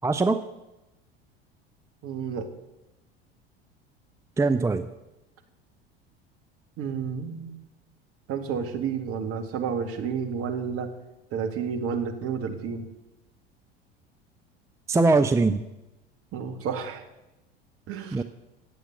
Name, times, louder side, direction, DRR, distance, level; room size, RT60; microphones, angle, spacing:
voice 1, 0.0-0.4 4.4-4.9 14.9-15.6 18.1-18.2, right 3 dB, 10° right, 10 dB, 0.6 m, -21 dB
voice 2, 2.0-2.5 6.8-7.6 8.3-10.9 11.3-12.9 16.3-17.0 17.9-18.2, right 6 dB, 45° right, 6 dB, 2.0 m, -31 dB
18.0 x 7.9 x 6.6 m, 0.96 s
figure-of-eight pair, 70°, 31 cm